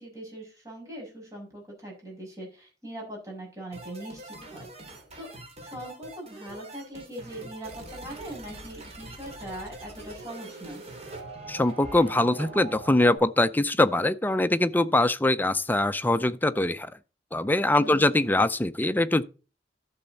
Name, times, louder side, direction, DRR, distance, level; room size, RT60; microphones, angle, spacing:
voice 1, 0.0-5.3 5.6-10.8 17.8-18.2, right 1 dB, 20° right, 6.3 m, -41 dB
sound 1, 3.7-13.2, right 2 dB, 35° right, 3.2 m, -43 dB
voice 2, 11.5-16.9 17.3-19.2, left 2 dB, 10° left, 0.5 m, -23 dB
12.0 x 7.0 x 4.1 m
head